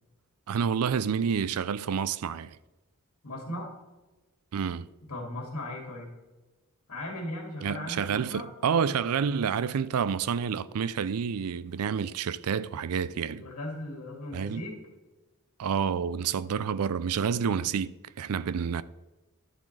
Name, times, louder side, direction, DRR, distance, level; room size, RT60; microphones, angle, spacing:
voice 1, 0.5-2.6 4.5-4.9 7.6-13.4 14.3-14.6 15.6-18.8, right 7 dB, 75° right, 0.4 m, -29 dB
voice 2, 3.2-3.7 5.1-6.1 6.9-8.5 13.3-14.8, left 1 dB, 80° left, 2.2 m, -37 dB
12.0 x 7.2 x 3.2 m
head